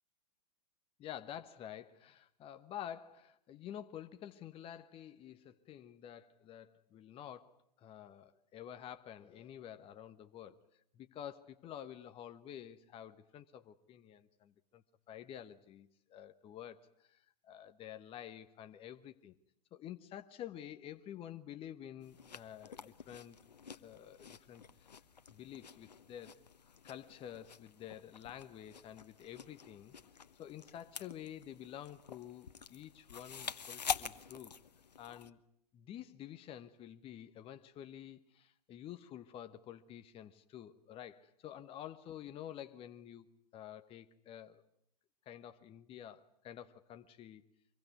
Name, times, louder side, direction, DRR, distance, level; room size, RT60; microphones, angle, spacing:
voice 1, 1.0-10.6 10.9-19.4 19.7-23.4 23.8-25.0 25.3-26.4 26.8-29.9 30.3-34.5 35.0-35.4 35.7-43.3 43.5-44.6 45.2-47.4, left 10 dB, 25° left, 9 dB, 1.1 m, -49 dB
sound 1, 22.0-35.3, left 7 dB, 85° left, 1.1 m, -47 dB
25.0 x 22.5 x 9.4 m, 0.74 s
hypercardioid pair, 115°, 21 cm